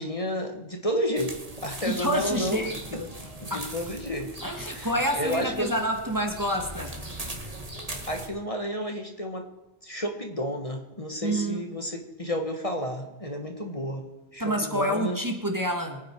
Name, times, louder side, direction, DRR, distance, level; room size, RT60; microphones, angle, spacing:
voice 1, 0.0-2.6 3.4-4.3 4.7-4.9 5.1-5.7 8.1-9.5 9.8-14.0 14.3-15.2, equal, 30° left, 3 dB, 1.6 m, -31 dB
sound 1, 1.2-8.3, right 1 dB, 35° right, 2.1 m, -40 dB
voice 2, 1.8-3.1 3.5-3.7 4.4-6.9 11.2-11.7 14.4-16.0, equal, 15° right, 2 dB, 1.7 m, -28 dB
24.0 x 9.3 x 4.6 m, 1.1 s
omnidirectional pair, 1.2 m